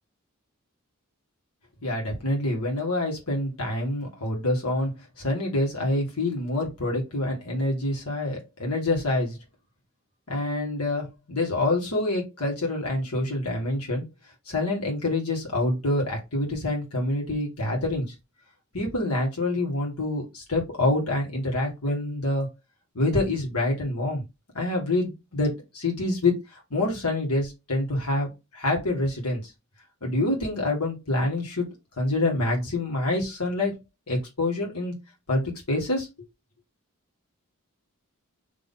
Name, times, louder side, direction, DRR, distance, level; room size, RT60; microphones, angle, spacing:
voice 1, 1.8-4.9 5.2-9.4 10.3-14.0 14.5-18.1 18.7-22.5 22.9-24.2 24.5-29.5 30.0-31.7 32.0-33.8 34.1-35.0 35.3-36.1, left 2 dB, 85° left, 1.7 m, -26 dB
3.7 x 3.0 x 4.0 m
head